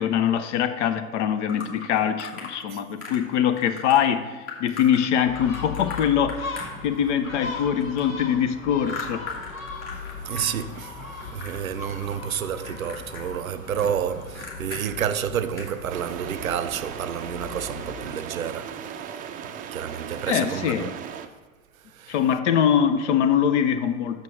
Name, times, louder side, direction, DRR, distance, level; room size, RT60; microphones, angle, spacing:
voice 1, 0.0-9.3 20.3-20.9 22.1-24.2, left 8 dB, 60° left, 0.8 m, -23 dB
sound 1, 1.5-2.5 3.0-3.3 3.6-4.0 4.5-7.2 7.5-10.5 10.7-11.6 11.9-12.4 12.6-14.8 15.2-15.3 15.5-15.8, left 4 dB, 35° left, 2.2 m, -38 dB
Gull seagull, 5.3-18.1, left 4 dB, 80° left, 1.2 m, -39 dB
voice 2, 9.9-20.9 21.9-22.2, right 8 dB, 85° right, 0.5 m, -30 dB
sound 2, 15.9-21.3, right 8 dB, 20° right, 0.4 m, -37 dB
6.5 x 5.3 x 6.4 m
figure-of-eight pair, 90°, 40 cm